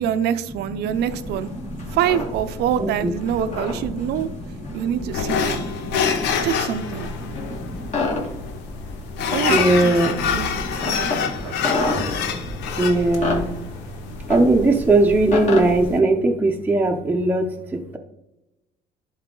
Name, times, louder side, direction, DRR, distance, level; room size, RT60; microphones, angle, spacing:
voice 1, 0.0-1.5 1.9-4.3 4.7-5.7 6.4-7.1 9.3-10.5 10.8-11.1 11.4-11.7, right 9 dB, 75° right, 12 dB, 0.6 m, -25 dB
voice 2, 0.6-2.0 2.8-5.1 5.5-6.5 7.2-7.9 9.5-13.5 14.3-18.0, right 2 dB, 10° right, 2 dB, 0.7 m, -22 dB
sound 1, 0.9-15.9, left 2 dB, 45° left, 2.3 m, -31 dB
sound 2, 5.1-16.0, left 6 dB, 90° left, 0.8 m, -27 dB
10.5 x 4.0 x 3.8 m, 0.92 s
cardioid pair, 110°, 17 cm